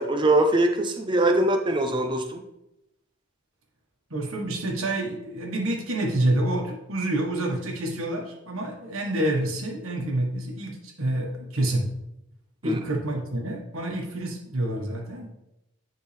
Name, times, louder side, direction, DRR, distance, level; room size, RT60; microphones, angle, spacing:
voice 1, 0.0-2.4 12.6-12.8, right 1 dB, 20° right, 5 dB, 0.6 m, -22 dB
voice 2, 4.1-11.9 12.6-15.3, right 1 dB, 75° right, 1 dB, 1.4 m, -28 dB
10.0 x 3.6 x 3.3 m, 0.87 s
head